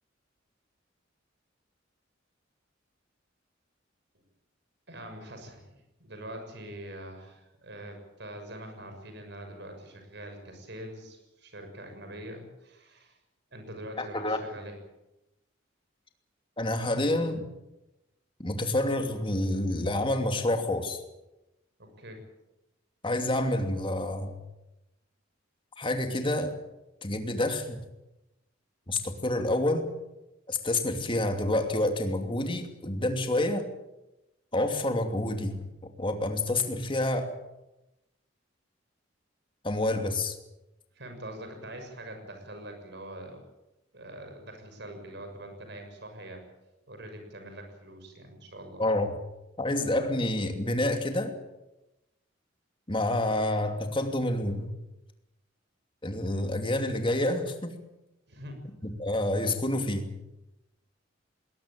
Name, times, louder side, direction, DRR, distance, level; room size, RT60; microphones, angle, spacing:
voice 1, 4.9-13.2 13.5-14.8 21.8-22.2 40.9-43.4 43.9-46.4 46.9-48.8 58.3-58.7, right 1 dB, 60° right, 5 dB, 6.4 m, -44 dB
voice 2, 14.0-14.4 16.6-17.5 18.4-21.0 23.0-24.3 25.8-26.5 27.0-27.8 28.9-29.9 30.5-33.6 34.5-37.3 39.6-40.4 48.8-49.1 49.6-51.4 52.9-54.7 56.0-57.7 59.0-60.1, left 1 dB, 25° left, 5 dB, 2.8 m, -28 dB
20.5 x 19.0 x 8.9 m, 0.94 s
head